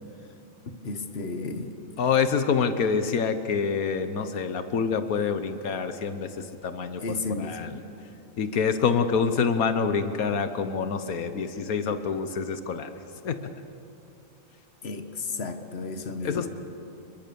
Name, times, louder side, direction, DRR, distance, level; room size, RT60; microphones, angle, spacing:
voice 1, 0.8-1.8 7.0-7.8 11.3-11.4 14.8-16.5, left 3 dB, 45° left, 7 dB, 1.7 m, -33 dB
voice 2, 2.0-7.0 7.3-7.7 8.4-12.9 13.2-13.5 16.2-16.5, left 6 dB, 85° left, 9 dB, 1.5 m, -26 dB
29.5 x 22.0 x 7.0 m, 2.7 s
omnidirectional pair, 1.5 m